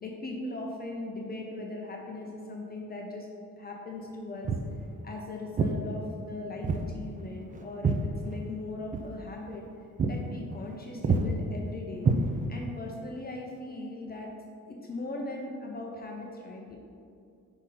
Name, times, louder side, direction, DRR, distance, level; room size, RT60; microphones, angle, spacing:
voice 1, 0.0-3.3 3.6-4.5 5.0-9.7 10.1-12.1 12.5-14.3 14.7-16.8, left 2 dB, 30° left, 0 dB, 0.6 m, -39 dB
Walk footsteps, 4.4-4.7 5.6-5.8 6.6-6.9 7.2-8.6 8.9-9.1 9.5-9.7 10.0-10.2 10.5-10.8 11.0-11.3 12.0-12.7, right 4 dB, 25° right, 0.4 m, -27 dB
5.8 x 5.0 x 4.2 m, 2.4 s
cardioid pair, 135°, 34 cm